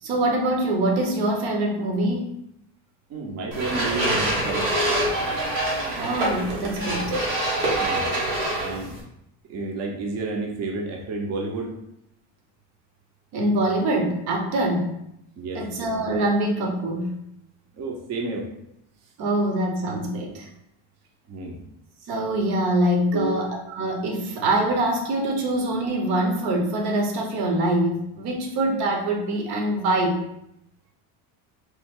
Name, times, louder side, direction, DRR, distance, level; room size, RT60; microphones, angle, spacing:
voice 1, 0.0-2.4 5.9-7.1 13.3-14.9 15.5-17.2 19.2-20.5 22.1-30.2, right 1 dB, 60° right, 1 dB, 1.0 m, -24 dB
voice 2, 3.1-4.7 7.8-8.1 8.6-9.0 9.5-11.7 15.4-15.7 17.7-18.5 21.3-21.6 23.1-23.3, right 3 dB, 40° right, 1 dB, 0.7 m, -30 dB
sound 1, 3.5-9.0, right 1 dB, 90° right, 1.1 m, -25 dB
3.1 x 2.2 x 3.5 m, 0.79 s
supercardioid pair, 100°, 42 cm